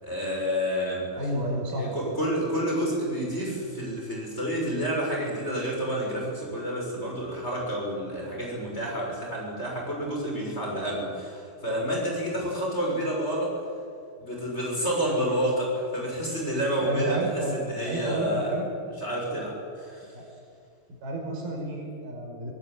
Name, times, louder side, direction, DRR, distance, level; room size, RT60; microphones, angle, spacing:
voice 1, 0.0-1.1 1.8-13.5 14.2-18.5 19.0-20.1, equal, 15° left, -2 dB, 6.8 m, -29 dB
voice 2, 1.1-1.8 16.8-17.6 17.8-18.7 20.1-20.3 21.0-22.5, right 1 dB, 90° right, 0 dB, 7.4 m, -31 dB
25.5 x 18.0 x 9.1 m, 2.2 s
omnidirectional pair, 4.2 m